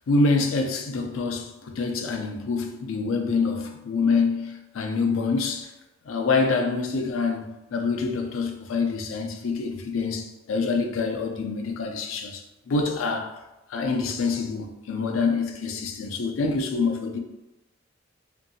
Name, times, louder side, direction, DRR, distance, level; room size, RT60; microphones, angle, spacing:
voice 1, 0.1-5.7 6.1-13.4 13.7-17.2, left 4 dB, 80° left, 0.4 m, -26 dB
2.7 x 2.6 x 2.6 m
head